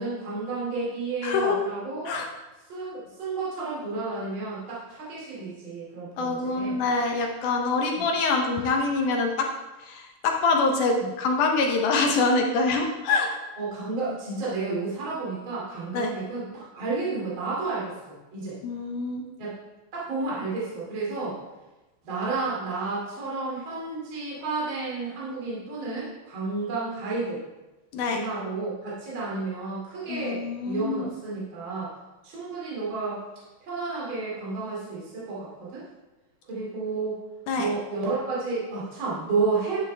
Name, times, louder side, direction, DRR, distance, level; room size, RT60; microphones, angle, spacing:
voice 1, 0.0-2.1 2.7-6.8 7.9-8.0 11.0-11.1 13.6-18.6 19.4-19.6 19.9-21.4 22.0-27.4 28.1-31.9 32.2-33.2 33.6-35.8 36.5-37.2 37.5-39.8, right 3 dB, 35° right, -7 dB, 3.0 m, -31 dB
voice 2, 1.2-1.6 2.1-2.3 6.2-9.5 9.8-13.3 15.9-16.1 18.6-19.2 27.9-28.2 30.1-31.1 37.5-37.7, left 3 dB, 70° left, 2 dB, 2.1 m, -25 dB
11.0 x 7.3 x 3.3 m, 1.1 s
omnidirectional pair, 4.2 m